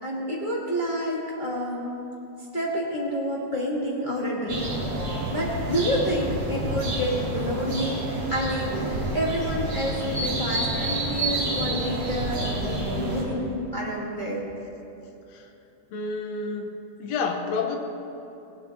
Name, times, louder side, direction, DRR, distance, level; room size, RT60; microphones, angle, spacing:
voice 1, 0.0-2.0 2.5-5.1 5.3-8.0 8.3-14.4, equal, 25° left, -5 dB, 1.0 m, -29 dB
sound 1, 4.5-13.2, right 1 dB, 50° right, 4.1 m, -29 dB
voice 2, 15.9-16.7 17.0-17.8, left 4 dB, 65° left, 4 dB, 2.1 m, -29 dB
18.0 x 17.5 x 2.9 m, 2.8 s
omnidirectional pair, 3.5 m